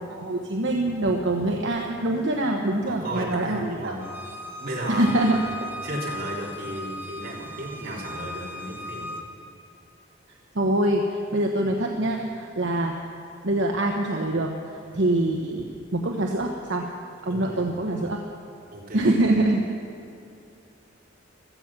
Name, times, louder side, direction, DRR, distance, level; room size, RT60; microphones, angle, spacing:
voice 1, 0.0-3.9 4.9-5.7 10.5-12.9 13.4-14.5 14.9-16.9 17.2-18.2 18.9-19.6, right 1 dB, 70° right, 1 dB, 1.1 m, -24 dB
voice 2, 2.8-4.0 4.6-5.5 5.8-9.1 17.3-17.8 18.7-19.3, right 1 dB, 50° right, -4 dB, 3.5 m, -34 dB
Bowed string instrument, 4.0-9.2, left 1 dB, 10° right, 1.4 m, -37 dB
16.5 x 13.0 x 6.0 m, 2.7 s
head